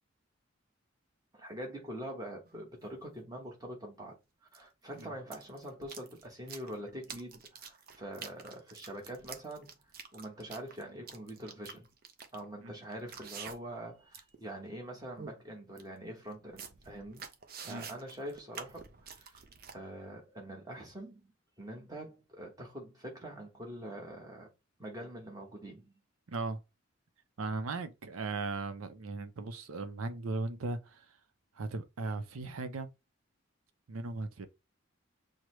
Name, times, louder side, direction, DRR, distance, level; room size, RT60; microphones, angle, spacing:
voice 1, 1.3-4.2 4.5-9.8 10.1-11.9 12.3-17.2 17.6-19.4 19.7-21.3 21.6-24.5 24.8-25.9, right 1 dB, 20° right, 1.1 m, -44 dB
sound 1, 2.5-2.6 4.5-4.6 4.9-13.8 14.1-14.4 14.8-14.9 15.2-15.4 15.8-15.9 16.3-19.8, right 6 dB, 45° right, 0.5 m, -48 dB
voice 2, 26.3-26.6 27.4-31.2 31.6-32.9 33.9-34.5, right 3 dB, 90° right, 0.6 m, -37 dB
6.2 x 2.1 x 3.0 m
head